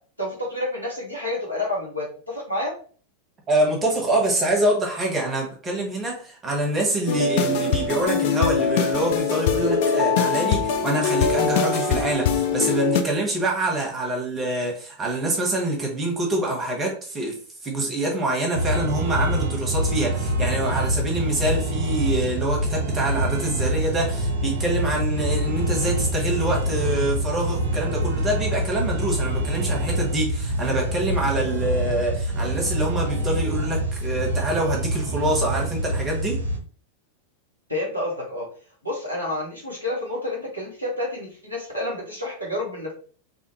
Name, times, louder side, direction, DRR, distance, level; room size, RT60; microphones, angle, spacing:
voice 1, 0.2-2.7 37.7-38.5 38.8-42.9, left 1 dB, 90° left, 1.2 m, -29 dB
voice 2, 3.5-17.4 17.6-36.4, right 1 dB, 20° right, 1.0 m, -25 dB
sound 1, 7.1-13.0, left 6 dB, 50° left, 0.4 m, -22 dB
sound 2, 18.5-36.6, right 1 dB, 65° right, 0.5 m, -25 dB
2.6 x 2.4 x 2.8 m
figure-of-eight pair, 90°, 0 cm